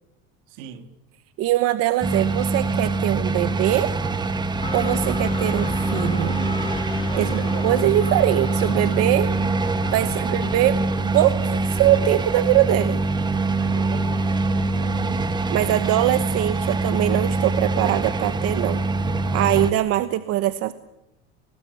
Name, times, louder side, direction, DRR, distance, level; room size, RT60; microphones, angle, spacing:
voice 1, 0.5-1.0 7.1-7.6 10.0-10.9 13.6-14.4 14.7-15.0, right 9 dB, 75° right, 2.8 m, -38 dB
voice 2, 1.4-3.9 4.7-6.4 7.2-7.3 7.6-9.3 9.9-10.8 11.1-13.0 15.5-18.8 19.3-20.7, right 14 dB, 50° right, 1.1 m, -22 dB
sound 1, 2.0-19.7, right 3 dB, 15° right, 1.3 m, -24 dB
sound 2, 4.6-16.4, left 4 dB, 15° left, 1.9 m, -34 dB
29.5 x 19.5 x 8.4 m
cardioid pair, 155°, 30 cm